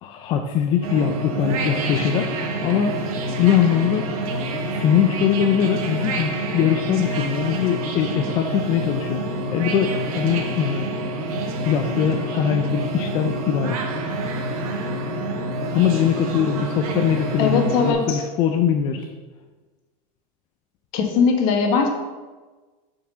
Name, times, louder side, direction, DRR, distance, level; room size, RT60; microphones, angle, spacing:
voice 1, 0.0-2.3 2.6-3.0 3.4-4.1 4.7-9.2 9.5-10.9 11.6-13.9 15.7-19.1, left 8 dB, 25° left, 4 dB, 0.3 m, -22 dB
sound 1, 0.8-17.9, right 1 dB, 80° right, 1.2 m, -27 dB
voice 2, 17.4-18.2 20.9-21.9, left 5 dB, 50° left, 3 dB, 1.2 m, -20 dB
5.5 x 4.7 x 6.2 m, 1.3 s
supercardioid pair, 170°, 18 cm